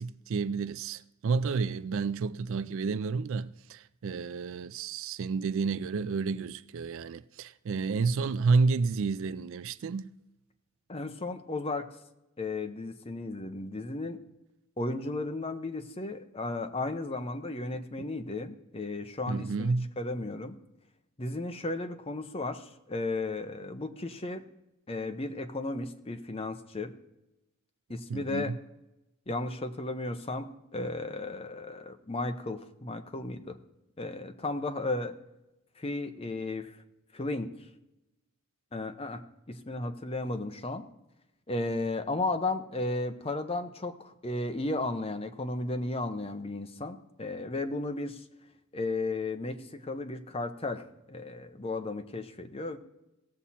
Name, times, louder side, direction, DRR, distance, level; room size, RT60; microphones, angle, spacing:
voice 1, 0.0-10.1 18.0-18.1 19.3-19.9 28.1-28.6, right 4 dB, 60° right, 0.4 m, -30 dB
voice 2, 10.9-11.9 12.4-14.2 14.8-20.6 21.2-24.4 24.9-27.0 27.9-28.5 29.3-33.6 34.0-35.2 35.8-36.8 37.1-37.5 38.7-39.2 39.5-40.8 41.5-48.2 48.7-52.8, left 2 dB, 25° left, 0.7 m, -34 dB
17.5 x 7.2 x 4.2 m
head